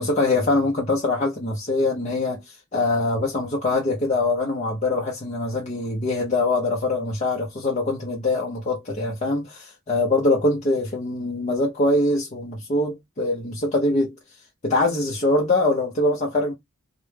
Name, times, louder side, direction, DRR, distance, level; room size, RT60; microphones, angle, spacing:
voice 1, 0.0-14.1 14.6-16.5, left 2 dB, 35° left, 0.5 m, -23 dB
2.1 x 2.0 x 3.1 m
head